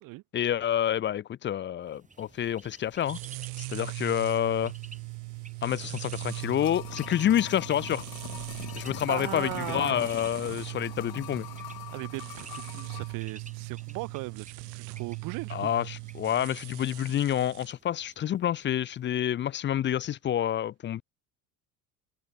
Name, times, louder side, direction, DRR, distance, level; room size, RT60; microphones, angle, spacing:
voice 1, 0.3-3.2 3.6-4.7 5.6-8.0 8.8-11.5 15.5-21.0, left 10 dB, 25° left, 0.4 m, -28 dB
Bird, 1.9-19.6, right 3 dB, 15° right, 4.7 m, -54 dB
sound 1, 3.0-17.7, right 40 dB or more, 75° right, 1.5 m, -40 dB
sound 2, 6.0-13.2 13.5-13.6, left 15 dB, 55° left, 2.1 m, -43 dB
voice 2, 9.1-10.2 11.9-14.5 14.7-15.7, right 21 dB, 50° right, 0.5 m, -37 dB
supercardioid pair, 100°, 44 cm